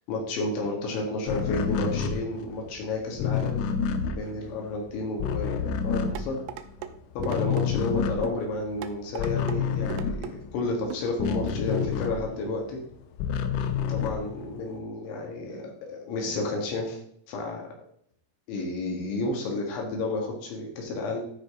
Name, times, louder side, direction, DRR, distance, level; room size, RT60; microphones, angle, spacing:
voice 1, 0.1-3.6 4.1-6.4 7.2-12.8 13.9-17.0 17.3-17.7 18.5-21.2, left 2 dB, 70° left, 0 dB, 4.0 m, -31 dB
sound 1, 1.3-6.9 7.1-12.6 12.9-14.8, left 6 dB, 90° left, 3.4 m, -29 dB
sound 2, 6.2-6.9 7.2-7.7 8.2-8.4 8.8-9.6 9.9-10.3 10.9-11.1 11.5-11.6, right 11 dB, 85° right, 2.9 m, -37 dB
12.5 x 5.2 x 3.7 m, 0.66 s
omnidirectional pair, 5.8 m